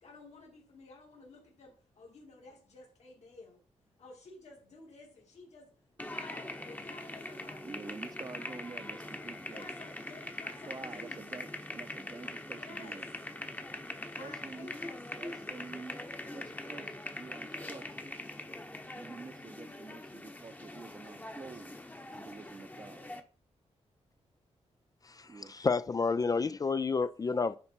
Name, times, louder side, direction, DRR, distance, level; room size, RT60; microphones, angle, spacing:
voice 1, 0.0-3.6 4.0-7.7 9.5-11.3 12.5-13.0 14.1-15.0 15.2-15.6, left 3 dB, 70° left, 2.9 m, -53 dB
sound 1, 6.0-23.2, left 1 dB, 15° left, 0.9 m, -43 dB
voice 2, 7.6-9.7 10.7-13.1 14.2-14.7 15.1-16.0 16.3-18.2 19.0-21.8 22.1-23.1 25.3-25.5, right 4 dB, 30° right, 0.7 m, -48 dB
voice 3, 25.0-27.6, left 4 dB, 30° left, 0.3 m, -30 dB
9.8 x 4.2 x 4.4 m
cardioid pair, 85°, 12 cm